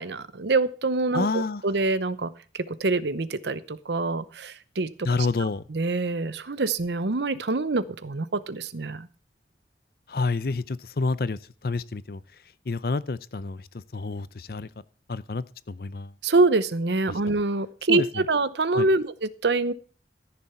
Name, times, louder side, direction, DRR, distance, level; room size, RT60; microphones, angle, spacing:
voice 1, 0.0-5.1 5.7-9.1 16.2-19.7, right 3 dB, 75° right, 17 dB, 0.8 m, -25 dB
voice 2, 1.1-1.6 5.0-5.6 10.1-12.2 12.7-13.7 13.9-14.7 15.1-16.1 17.1-17.2 17.9-18.2 18.7-18.9, left 3 dB, 55° left, 18 dB, 0.6 m, -28 dB
14.5 x 6.9 x 5.7 m, 0.39 s
head